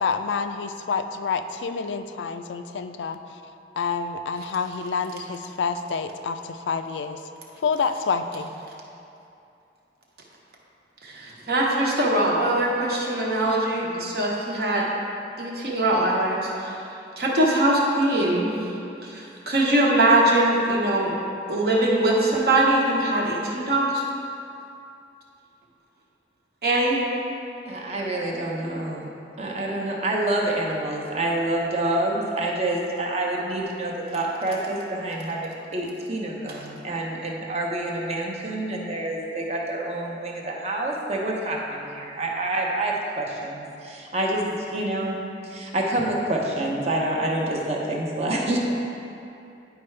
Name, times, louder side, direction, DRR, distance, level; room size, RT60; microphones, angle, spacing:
voice 1, 0.0-3.4 3.8-7.2 7.6-8.5, left 5 dB, 85° left, 8 dB, 0.4 m, -28 dB
voice 2, 11.0-14.9 15.4-16.8 17.2-18.5 19.0-21.1 21.5-24.0 26.6-27.0, right 1 dB, 60° right, -3 dB, 1.1 m, -22 dB
voice 3, 27.7-29.1 29.4-48.6, right 1 dB, 35° right, -1 dB, 0.9 m, -27 dB
10.0 x 4.6 x 3.3 m, 2.7 s
head